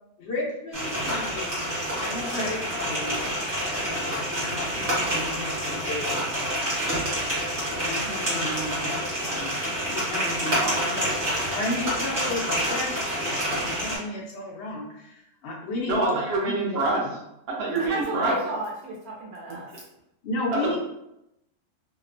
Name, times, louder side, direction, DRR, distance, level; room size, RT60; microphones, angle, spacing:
voice 1, 0.2-1.6 2.0-3.2 4.1-6.7 7.7-9.6 9.9-11.1 11.4-17.1 20.2-20.8, left 1 dB, 70° left, -2 dB, 0.6 m, -34 dB
sound 1, 0.7-14.0, equal, 40° right, 1.1 m, -28 dB
voice 2, 15.9-17.1 17.5-18.3 20.5-20.8, right 2 dB, 60° right, -2 dB, 0.6 m, -26 dB
voice 3, 17.7-19.8, right 1 dB, 80° right, -3 dB, 1.0 m, -32 dB
2.8 x 2.0 x 2.5 m, 0.85 s
omnidirectional pair, 1.6 m